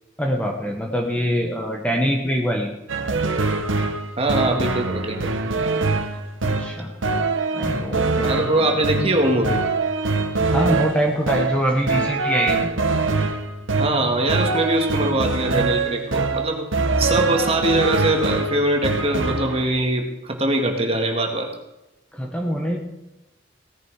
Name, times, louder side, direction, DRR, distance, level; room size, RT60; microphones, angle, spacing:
voice 1, 0.2-2.7 6.4-6.9 7.5-8.3 10.5-12.7 22.1-22.8, equal, 5° left, 1 dB, 1.4 m, -23 dB
sound 1, 2.9-19.6, right 3 dB, 90° right, 1.3 m, -23 dB
voice 2, 4.2-5.3 8.2-9.6 13.7-21.5, right 1 dB, 30° right, 2 dB, 2.0 m, -22 dB
17.5 x 10.5 x 4.8 m, 0.97 s
head